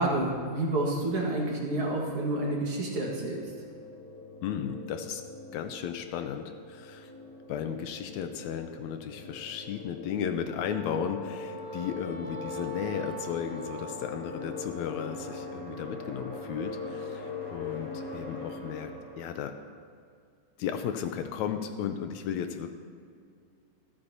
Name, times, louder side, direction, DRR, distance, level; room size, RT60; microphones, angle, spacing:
voice 1, 0.0-3.4, right 2 dB, 50° right, -2 dB, 2.4 m, -29 dB
sound 1, 2.9-19.4, left 3 dB, 15° left, 3.2 m, -42 dB
voice 2, 4.4-5.2 5.5-7.1 7.5-18.9 19.2-19.6 20.6-22.7, left 8 dB, 80° left, 7 dB, 1.9 m, -35 dB
Wind instrument woodwind instrument, 10.4-14.9, right 3 dB, 20° right, 3.4 m, -45 dB
25.5 x 8.7 x 2.8 m, 2.3 s
omnidirectional pair, 3.4 m